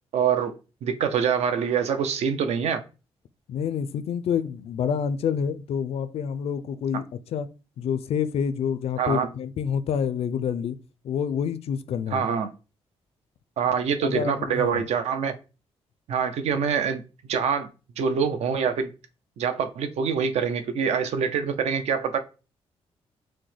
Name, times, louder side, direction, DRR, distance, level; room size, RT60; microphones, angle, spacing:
voice 1, 0.1-2.8 9.0-9.3 12.1-12.5 13.6-15.3 16.1-17.0 17.3-17.7 18.0-18.9 19.4-22.2, right 7 dB, 75° right, 0.5 m, -25 dB
voice 2, 3.5-7.0 7.3-7.5 7.8-10.8 11.0-12.3 14.0-14.8, left 7 dB, 65° left, 0.4 m, -27 dB
6.0 x 2.1 x 3.2 m
cardioid pair, 140°, 11 cm